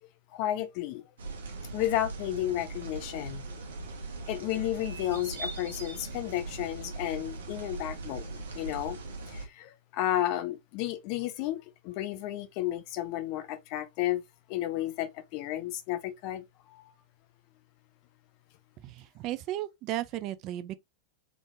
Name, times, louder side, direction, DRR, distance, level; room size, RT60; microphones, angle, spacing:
voice 1, 0.3-1.0 1.7-3.4 4.3-9.0 9.3-14.2 14.5-16.8, left 13 dB, 45° left, 0.6 m, -32 dB
sound 1, 1.2-9.5, right 3 dB, 65° right, 1.2 m, -40 dB
voice 2, 18.8-20.8, right 14 dB, 40° right, 0.4 m, -35 dB
3.7 x 3.4 x 2.4 m
figure-of-eight pair, 90°, 0 cm